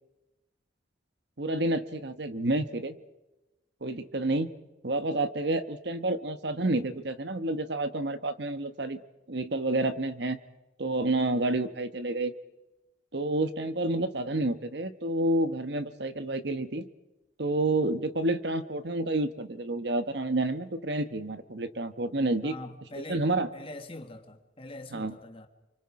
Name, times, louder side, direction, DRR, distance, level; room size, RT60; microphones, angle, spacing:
voice 1, 1.4-2.9 3.8-4.5 4.8-9.0 9.3-10.4 10.8-12.3 13.1-16.9 17.4-22.6 23.0-23.5 24.9-25.2, right 2 dB, 60° right, 1.1 m, -29 dB
voice 2, 22.4-25.5, left 2 dB, 30° left, 1.6 m, -43 dB
29.0 x 25.0 x 4.8 m
head